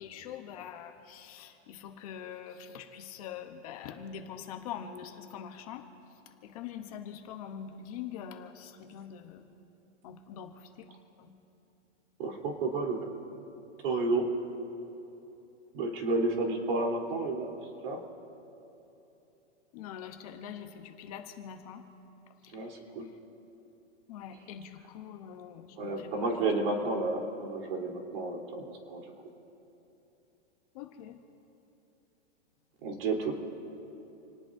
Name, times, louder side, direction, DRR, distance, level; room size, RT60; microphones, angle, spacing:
voice 1, 0.0-5.9 6.4-9.4 10.0-10.9 11.2-11.3 19.7-21.8 24.1-26.5 30.7-31.2, left 8 dB, 30° left, 5 dB, 0.9 m, -44 dB
voice 2, 12.2-13.1 13.8-14.2 15.7-17.5 17.8-18.0 22.5-23.1 25.8-29.1 32.8-33.3, right 3 dB, 55° right, 1 dB, 3.7 m, -31 dB
28.0 x 19.0 x 2.7 m, 3.0 s
supercardioid pair, 170°, 35 cm